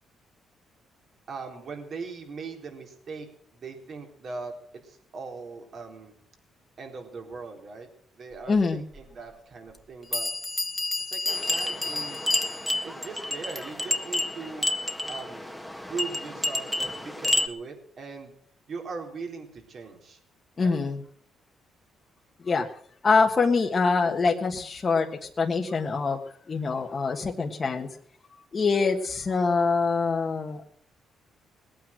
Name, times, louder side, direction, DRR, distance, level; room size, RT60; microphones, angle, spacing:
voice 1, 1.3-3.3 3.5-4.5 4.8-6.2 6.8-7.9 8.2-10.3 11.0-12.3 12.8-14.7 15.1-15.4 15.9-18.3 18.7-20.2 20.6-20.8, right 4 dB, 55° right, 2 dB, 4.0 m, -40 dB
voice 2, 8.5-8.8 20.6-21.0 22.4-22.7 23.0-25.1 25.4-26.2 26.5-27.9 28.5-30.6, left 4 dB, 35° left, 1 dB, 1.5 m, -24 dB
Bell, 8.9-9.0 9.7-9.8 10.1-12.9, left 3 dB, 15° left, 1.6 m, -31 dB
sound 1, 11.3-17.5, left 1 dB, ahead, 1.6 m, -30 dB
19.5 x 9.1 x 7.5 m, 0.62 s
cardioid pair, 90°, 0 cm